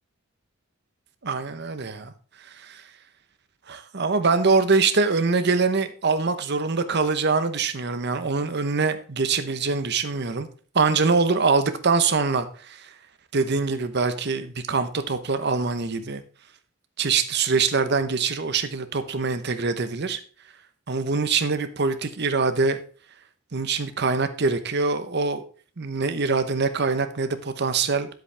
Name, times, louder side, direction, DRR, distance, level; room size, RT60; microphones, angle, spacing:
voice 1, 1.2-2.1 2.6-2.8 3.7-10.5 10.7-12.9 13.3-16.2 17.0-20.2 20.9-22.8 23.5-25.4 25.8-28.1, right 4 dB, 55° right, 10 dB, 0.9 m, -24 dB
10.0 x 7.8 x 3.4 m, 0.41 s
head